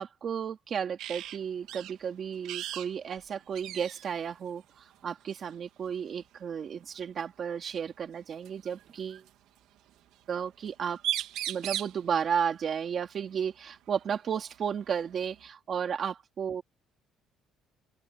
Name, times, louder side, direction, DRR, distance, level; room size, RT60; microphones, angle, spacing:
voice 1, 0.0-9.2 10.3-11.0 11.5-16.6, right 7 dB, 35° right, 2.8 m, -33 dB
sound 1, 1.0-1.4 1.7-1.9 2.4-2.9 3.2-3.3 3.6-4.1 5.3-5.5 7.2-7.3 8.5-9.3 10.7-10.8 11.0-12.0 13.9-14.0 14.5-15.5, right 13 dB, 70° right, 2.2 m, -36 dB
open air
cardioid pair, 165°, 0 cm